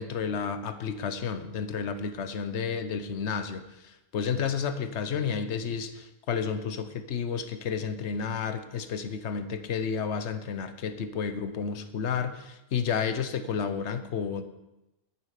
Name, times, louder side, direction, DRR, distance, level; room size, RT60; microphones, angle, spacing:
voice 1, 0.0-14.4, left 6 dB, 60° left, 10 dB, 1.0 m, -31 dB
10.0 x 9.3 x 4.9 m, 0.96 s
omnidirectional pair, 1.4 m